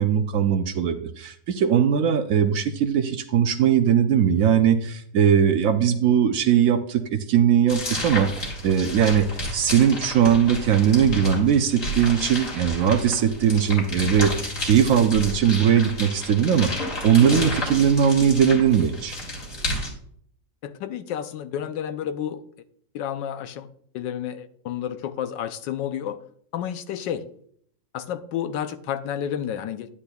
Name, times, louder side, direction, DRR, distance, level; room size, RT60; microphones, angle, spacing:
voice 1, 0.0-9.3 9.5-19.2, right 8 dB, 70° right, 9 dB, 0.8 m, -20 dB
sound 1, 7.7-19.9, left 1 dB, 45° left, 2.8 m, -31 dB
voice 2, 20.6-22.4 22.9-23.7 23.9-26.2 26.5-27.2 27.9-29.9, left 9 dB, 85° left, 11 dB, 1.3 m, -30 dB
10.0 x 9.7 x 2.3 m, 0.63 s
omnidirectional pair, 1.9 m